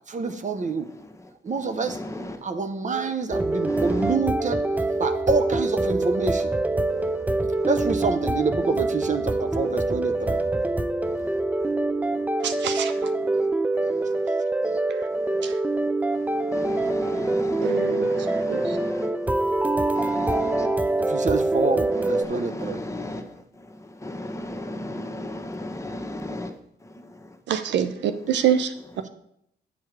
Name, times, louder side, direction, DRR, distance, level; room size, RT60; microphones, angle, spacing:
voice 1, 0.1-0.9 1.4-2.0 2.4-4.6 5.0-6.5 7.6-10.4 21.0-22.8 29.0-29.1, right 4 dB, 40° right, 8 dB, 0.8 m, -27 dB
voice 2, 1.9-2.4 3.7-4.1 6.9-7.2 7.6-7.7 10.4-10.5 11.1-11.7 12.1-12.6 13.2-13.5 13.7-14.2 14.6-14.8 15.1-15.9 16.2-19.1 19.6-20.7 21.9-26.5 26.8-27.4, left 1 dB, 15° left, 4 dB, 1.2 m, -36 dB
spacesuit tribute, 3.3-22.2, right 2 dB, 10° right, 0.4 m, -25 dB
voice 3, 12.4-12.9 15.4-15.5 17.6-18.1 18.5-18.6 27.5-28.7, right 9 dB, 70° right, 10 dB, 0.6 m, -25 dB
9.0 x 4.6 x 4.7 m, 0.73 s
supercardioid pair, 65°, 19 cm